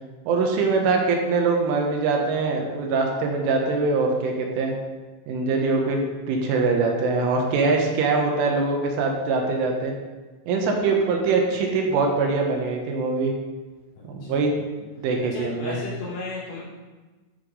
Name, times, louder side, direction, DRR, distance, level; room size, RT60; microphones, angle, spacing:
voice 1, 0.3-4.7 5.3-6.0 6.3-9.9 10.5-13.3 14.1-14.5 15.0-15.8, right 4 dB, 80° right, 1 dB, 3.8 m, -23 dB
voice 2, 13.9-14.4 15.3-16.6, left 3 dB, 85° left, -7 dB, 6.5 m, -34 dB
13.5 x 5.9 x 5.6 m, 1.3 s
omnidirectional pair, 5.9 m